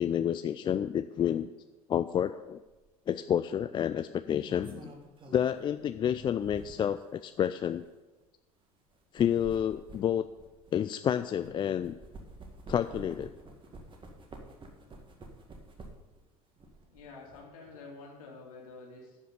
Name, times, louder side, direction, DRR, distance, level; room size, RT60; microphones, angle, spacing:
voice 1, 0.0-1.5 1.9-2.6 3.1-4.9 5.3-7.8 9.1-10.3 10.7-12.0 12.7-13.3, left 9 dB, 25° left, 11 dB, 0.3 m, -29 dB
sound 1, 2.7-2.9 4.1-7.0 7.7-7.8 8.9-11.5 11.8-16.2 16.6-17.4, right 2 dB, 25° right, 1.9 m, -49 dB
voice 2, 16.9-19.2, left 3 dB, 70° left, -1 dB, 2.9 m, -48 dB
11.0 x 5.7 x 6.9 m, 1.2 s
figure-of-eight pair, 75°, 19 cm